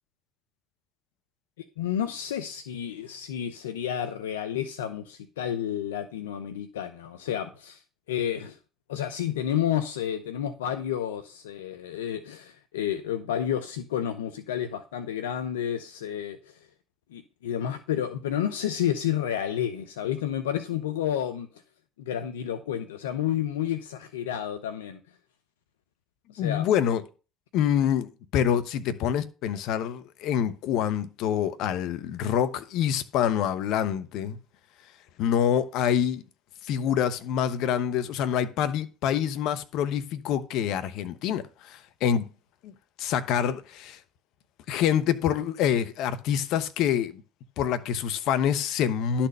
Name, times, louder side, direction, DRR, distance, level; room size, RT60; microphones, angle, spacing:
voice 1, 1.8-7.8 8.1-8.6 8.9-16.4 17.1-21.5 22.1-25.0 26.3-26.7, left 10 dB, 90° left, 0.7 m, -30 dB
voice 2, 26.4-27.0 27.5-34.4 35.2-36.2 36.6-42.2 42.6-42.7 43.0-44.0 44.7-47.2 47.6-49.3, left 9 dB, 65° left, 1.0 m, -26 dB
11.5 x 4.4 x 6.6 m
hypercardioid pair, 70°, 0 cm